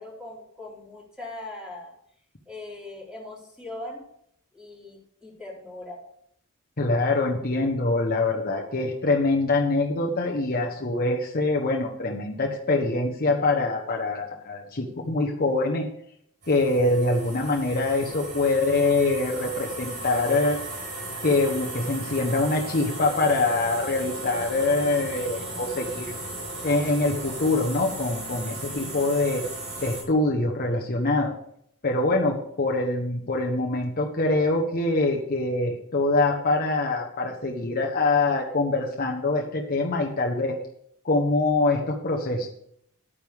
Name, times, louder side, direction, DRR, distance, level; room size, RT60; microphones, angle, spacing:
voice 1, 0.0-1.9 2.5-4.0 4.5-6.0, left 2 dB, 5° right, -4 dB, 3.8 m, -40 dB
voice 2, 6.8-15.9 16.5-20.6 21.2-26.1 26.6-29.4 29.8-31.3 31.8-40.6 41.0-42.5, left 2 dB, 45° left, 0 dB, 1.1 m, -24 dB
sound 1, 16.4-30.0, right 2 dB, 70° right, 4.8 m, -36 dB
11.5 x 9.4 x 3.6 m, 0.69 s
head